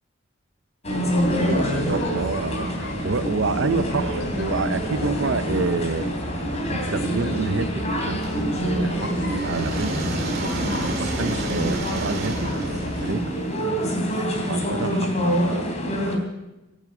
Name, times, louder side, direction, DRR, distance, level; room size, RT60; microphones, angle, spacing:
sound 1, 0.8-13.1, equal, 75° left, 3.6 m, -32 dB
sound 2, 0.8-16.2, equal, 35° left, 3.2 m, -27 dB
voice 1, 1.2-6.1 6.3-13.4 14.4-15.7, right 4 dB, 75° right, 13 dB, 0.6 m, -29 dB
sound 3, 8.2-14.1, right 2 dB, 55° right, 2.5 m, -32 dB
14.0 x 11.0 x 7.7 m, 1.0 s
head